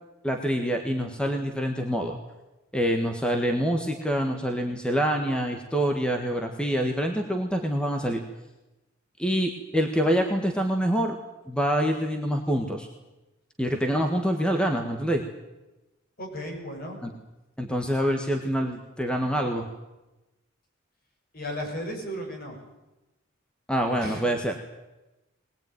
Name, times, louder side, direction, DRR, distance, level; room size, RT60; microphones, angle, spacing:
voice 1, 0.2-2.2 2.7-8.2 9.2-11.1 11.5-12.9 13.6-15.2 17.0-17.1 17.6-19.7 23.7-24.6, equal, 5° left, 3 dB, 1.6 m, -26 dB
voice 2, 16.2-17.0 21.3-22.7 24.0-24.2, equal, 45° left, 1 dB, 6.6 m, -35 dB
21.0 x 20.0 x 9.3 m, 1.0 s
head